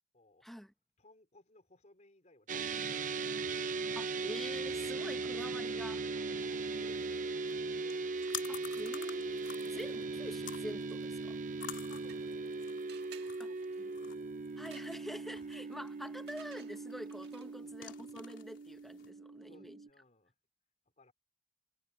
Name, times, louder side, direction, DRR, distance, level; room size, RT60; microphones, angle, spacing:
voice 1, 0.1-0.5 1.0-4.0 6.1-8.1 11.8-14.4 15.4-15.5 17.5-17.8 19.4-20.3 21.0-21.1, left 2 dB, 40° left, 3.8 m, -63 dB
sound 1, 2.5-19.9, right 3 dB, 45° right, 0.7 m, -39 dB
voice 2, 4.0-6.0 8.5-11.4 14.6-19.8, equal, ahead, 1.0 m, -47 dB
sound 2, 6.4-19.1, left 9 dB, 85° left, 3.5 m, -51 dB
sound 3, 11.8-12.5 12.9-17.7, right 9 dB, 60° right, 2.1 m, -59 dB
head